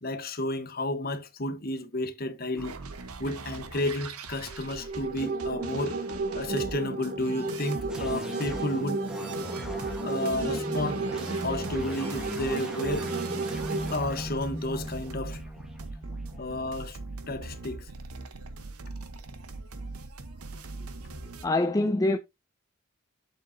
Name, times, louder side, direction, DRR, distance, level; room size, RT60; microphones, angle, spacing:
voice 1, 0.0-2.7 3.2-6.0 6.3-9.0 10.0-11.0 11.4-13.1 13.9-15.4 16.4-17.0 17.3-17.9, left 1 dB, 45° left, 1.1 m, -32 dB
sound 1, 2.6-21.5, right 3 dB, 90° right, 1.1 m, -41 dB
sound 2, 4.5-13.9, right 3 dB, 40° right, 0.5 m, -33 dB
sound 3, 7.9-17.3, equal, 5° right, 1.2 m, -39 dB
voice 2, 21.4-22.2, left 2 dB, 15° left, 0.3 m, -24 dB
7.4 x 7.3 x 2.7 m
head